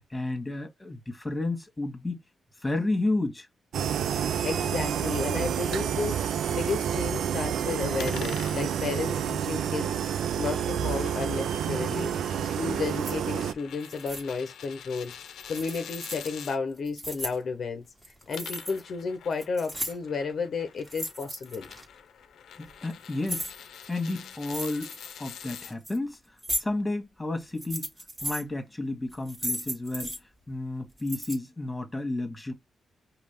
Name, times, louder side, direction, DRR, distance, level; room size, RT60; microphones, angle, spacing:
voice 1, 0.1-2.2 2.6-3.5 22.6-23.5 23.9-24.9 25.2-26.2 26.5-27.9 28.2-30.2 30.5-32.5, left 2 dB, 10° left, 1.5 m, -31 dB
sound 1, 3.7-13.5, right 8 dB, 85° right, 0.4 m, -29 dB
voice 2, 4.4-12.1 12.6-15.1 15.5-17.8 18.3-21.7, left 4 dB, 55° left, 0.7 m, -32 dB
sound 2, 8.0-16.6 18.1-25.7, left 8 dB, 90° left, 0.6 m, -46 dB
sound 3, 13.0-13.1 13.8-14.2 15.5-16.3 16.8-17.4 18.0-18.8 19.1-20.1 20.8-21.8 22.6-23.5 24.4-25.1 25.6-26.0 26.4-26.6 27.4-28.4 29.1-30.2 31.0-31.4, equal, 10° right, 1.5 m, -35 dB
5.2 x 2.4 x 3.5 m
wide cardioid pair, 125°, 0 cm